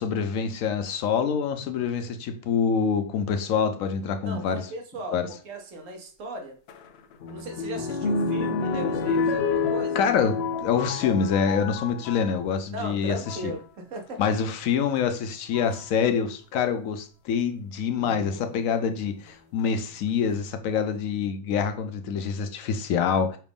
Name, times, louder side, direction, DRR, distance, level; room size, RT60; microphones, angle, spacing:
voice 1, 0.0-4.6 5.1-5.3 9.9-13.5 14.2-23.4, left 6 dB, 85° left, 1.0 m, -26 dB
voice 2, 4.2-6.6 7.3-10.0 12.7-14.2 15.7-15.8, right 1 dB, 75° right, 1.3 m, -37 dB
sound 1, 6.7-12.3 13.1-13.5 14.7-14.8 15.5-15.9 18.0-18.6 19.3-19.4 19.6-19.7, left 4 dB, 65° left, 0.7 m, -29 dB
5.8 x 2.5 x 3.4 m
omnidirectional pair, 1.4 m